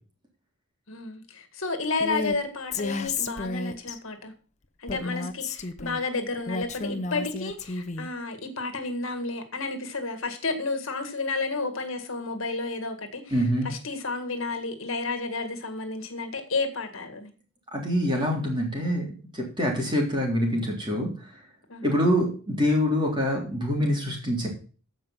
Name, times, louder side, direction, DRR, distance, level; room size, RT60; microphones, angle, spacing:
voice 1, 0.9-4.3 4.8-17.3 21.7-22.0, left 3 dB, 70° left, 1.9 m, -31 dB
Female speech woman speaking, 2.0-2.4 2.7-4.0 4.9-6.0 6.5-8.1, left 3 dB, 30° left, 0.8 m, -32 dB
voice 2, 13.3-13.7 17.7-21.1 21.8-24.5, equal, 20° right, 3.6 m, -25 dB
15.0 x 5.3 x 5.8 m
head